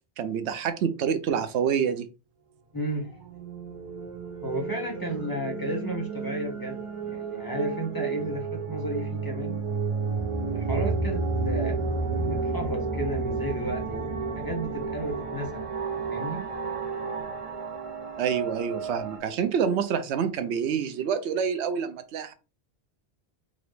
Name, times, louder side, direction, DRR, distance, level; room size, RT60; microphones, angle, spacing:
voice 1, 0.2-2.1 18.2-22.3, right 7 dB, 90° right, 0.9 m, -27 dB
voice 2, 2.7-3.3 4.4-9.6 10.5-11.9 12.1-14.0 14.4-15.7 16.1-16.5, right 1 dB, 20° left, 1.1 m, -33 dB
sound 1, 3.1-19.2, right 4 dB, 35° right, 0.7 m, -31 dB
4.0 x 2.9 x 3.2 m
omnidirectional pair, 1.1 m